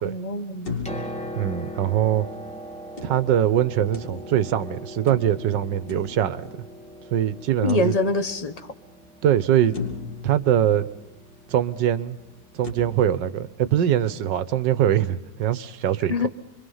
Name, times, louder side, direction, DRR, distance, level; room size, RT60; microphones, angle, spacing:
voice 1, 0.0-0.8 7.6-8.7 16.1-16.3, left 2 dB, 25° left, 9 dB, 1.1 m, -25 dB
Piano, 0.6-14.3 15.4-15.5, equal, 5° left, 2.7 m, -41 dB
sound 1, 0.7-2.3 3.0-4.6 5.1-7.0 7.7-8.5 9.0-9.1 9.7-11.4 12.6-12.7, left 5 dB, 85° left, 3.9 m, -37 dB
voice 2, 1.4-2.3 3.0-6.4 7.1-7.9 9.2-9.7 10.2-10.9 11.5-12.2 12.5-16.3, right 10 dB, 90° right, 15 dB, 1.6 m, -22 dB
26.5 x 23.5 x 5.6 m, 0.91 s
omnidirectional pair, 1.9 m